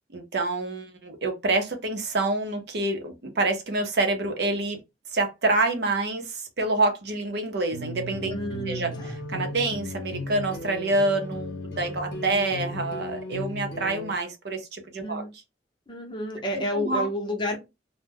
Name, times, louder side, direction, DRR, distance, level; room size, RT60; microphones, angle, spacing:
voice 1, 0.1-4.8 5.1-8.3 8.7-8.9 9.3-11.5 11.8-15.2 16.5-17.1, right 2 dB, 60° right, 0.6 m, -27 dB
sound 1, 7.7-14.1, left 1 dB, 65° left, 0.6 m, -35 dB
voice 2, 8.3-9.2 15.0-15.3 15.9-17.6, equal, 25° left, 0.7 m, -30 dB
2.2 x 2.1 x 3.3 m
head